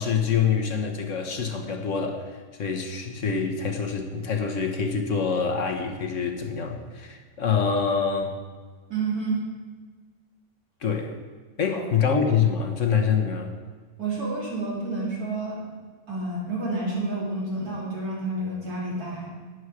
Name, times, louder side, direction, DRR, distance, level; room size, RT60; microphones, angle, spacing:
voice 1, 0.0-2.2 2.6-8.4 10.8-11.1 11.6-13.5, left 6 dB, 55° left, 4 dB, 1.4 m, -25 dB
voice 2, 8.9-9.4 11.7-12.0 14.0-15.7 16.1-19.3, right 2 dB, 90° right, -4 dB, 3.6 m, -29 dB
11.5 x 9.7 x 4.8 m, 1.5 s
omnidirectional pair, 1.6 m